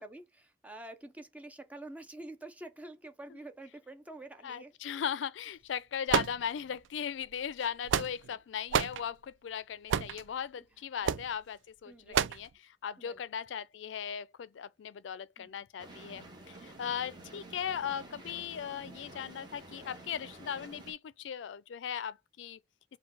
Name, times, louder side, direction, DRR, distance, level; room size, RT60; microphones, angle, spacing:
voice 1, 0.0-4.7 10.6-10.7 11.9-12.2 13.0-13.2 15.4-15.5, right 1 dB, 10° right, 0.6 m, -47 dB
voice 2, 4.4-22.6, left 8 dB, 85° left, 0.4 m, -38 dB
sound 1, 6.1-6.9 7.6-8.4 8.7-9.0 9.9-10.2 11.0-11.3 12.1-12.5, right 8 dB, 85° right, 0.3 m, -29 dB
sound 2, 15.8-20.9, right 2 dB, 25° right, 1.1 m, -50 dB
4.4 x 2.2 x 4.1 m
head